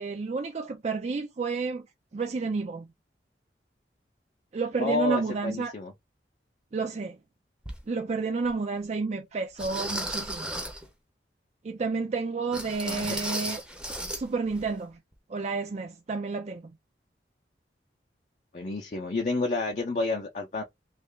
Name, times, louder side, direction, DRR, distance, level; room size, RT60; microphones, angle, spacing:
voice 1, 0.0-1.9 2.1-2.9 4.5-5.7 6.7-7.2 7.9-10.5 11.6-13.6 14.1-15.0 15.3-16.7, right 4 dB, 40° right, 0.4 m, -30 dB
voice 2, 4.8-5.9 12.8-13.2 18.5-20.6, left 3 dB, 45° left, 0.6 m, -30 dB
sound 1, 7.6-7.8 8.5-8.6 9.6-10.9 12.5-14.2 14.5-14.7 15.1-15.2, right 1 dB, 5° right, 0.6 m, -34 dB
3.1 x 2.4 x 3.6 m
head